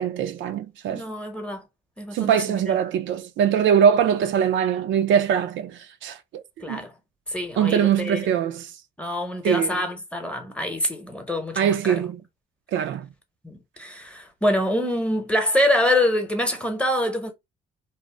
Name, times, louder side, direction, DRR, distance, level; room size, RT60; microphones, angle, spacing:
voice 1, 0.0-1.0 2.1-6.8 7.6-8.7 9.4-9.8 11.6-12.2 12.7-13.1, right 8 dB, 70° right, 0.4 m, -22 dB
voice 2, 0.9-1.6 2.0-2.8 6.6-6.9 7.3-8.2 9.0-12.0 13.4-17.3, left 1 dB, 5° left, 0.8 m, -25 dB
2.6 x 2.0 x 3.1 m
cardioid pair, 90°, 20 cm